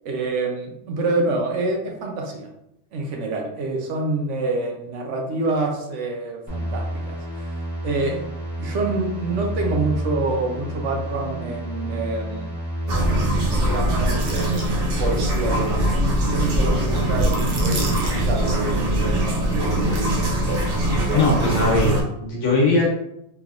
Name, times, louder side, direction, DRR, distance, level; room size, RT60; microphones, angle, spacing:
voice 1, 0.0-2.5 2.9-7.2 7.4-7.5 7.8-8.2 8.6-12.5 13.5-20.1, right 2 dB, 80° right, 1 dB, 1.0 m, -27 dB
sound 1, 6.5-14.1, right 1 dB, 30° right, 1.5 m, -29 dB
sound 2, 12.9-22.0, right 1 dB, 55° right, 0.8 m, -22 dB
voice 2, 21.1-22.9, left 2 dB, 80° left, -2 dB, 1.3 m, -20 dB
3.3 x 2.9 x 2.4 m, 0.79 s
omnidirectional pair, 1.2 m